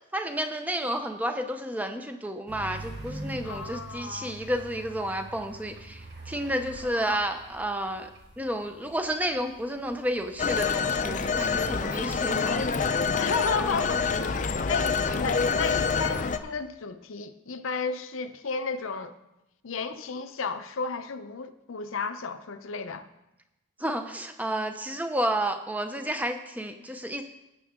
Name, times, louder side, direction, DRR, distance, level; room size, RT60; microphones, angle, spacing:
voice 1, 0.1-8.1 8.4-12.7 23.8-27.2, right 1 dB, 5° right, 7 dB, 0.6 m, -31 dB
sound 1, 2.5-12.0, right 2 dB, 50° right, 1.3 m, -45 dB
voice 2, 3.4-4.3 6.8-7.2 13.1-19.1 19.6-23.1, left 4 dB, 75° left, 10 dB, 0.7 m, -33 dB
Telephone, 10.4-16.4, left 5 dB, 35° left, 0.5 m, -26 dB
18.0 x 6.8 x 3.7 m, 0.93 s
head